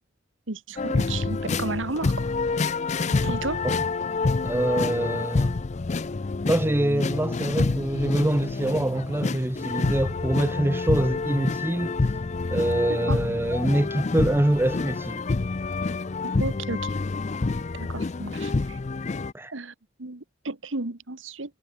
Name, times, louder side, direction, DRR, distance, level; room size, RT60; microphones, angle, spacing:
voice 1, 0.5-2.3 2.6-2.8 3.2-3.7 13.1-13.2 16.2-17.0 17.7-18.8 19.5-19.7 20.0-21.6, right 3 dB, 85° right, 1.7 m, -33 dB
sound 1, 0.8-19.3, left 3 dB, 35° left, 0.5 m, -27 dB
voice 2, 4.4-5.6 6.4-12.1 12.5-15.4 19.3-19.5, right 1 dB, 10° right, 0.5 m, -25 dB
head